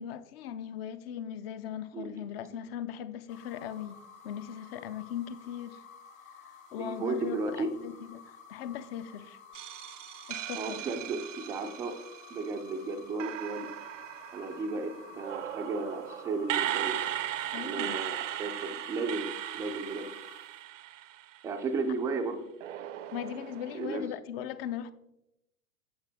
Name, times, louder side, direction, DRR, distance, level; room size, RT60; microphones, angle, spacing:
voice 1, 0.0-5.8 6.4-9.4 10.3-10.9 17.5-18.0 23.1-24.9, left 9 dB, 45° left, 0.6 m, -39 dB
sound 1, 3.3-20.6, left 6 dB, 65° left, 1.6 m, -52 dB
voice 2, 6.8-7.7 10.6-12.0 12.3-13.7 14.3-17.0 17.6-20.1 21.4-22.4 23.7-24.0, right 3 dB, 10° right, 0.3 m, -34 dB
sound 2, 9.5-12.7 13.2-21.6 22.6-24.1, right 13 dB, 60° right, 0.6 m, -38 dB
8.8 x 6.8 x 3.4 m
figure-of-eight pair, 90°, 43 cm